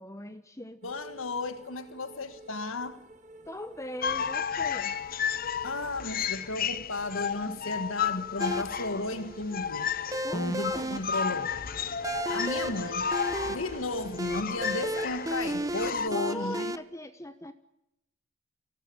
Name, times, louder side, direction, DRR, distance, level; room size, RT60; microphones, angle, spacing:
voice 1, 0.0-0.8 3.5-5.0 10.2-11.0 16.1-17.5, left 1 dB, 15° left, 10 dB, 1.0 m, -40 dB
voice 2, 0.8-3.0 5.6-9.9 10.3-11.5 12.3-13.1 13.4-16.8, left 2 dB, 85° left, 11 dB, 1.7 m, -34 dB
sound 1, 0.8-16.6, right 2 dB, 35° right, 2.5 m, -50 dB
sound 2, 4.0-16.1, left 7 dB, 45° left, 0.8 m, -33 dB
sound 3, 8.4-16.8, right 1 dB, 15° right, 0.8 m, -34 dB
25.0 x 17.0 x 9.0 m, 0.84 s
head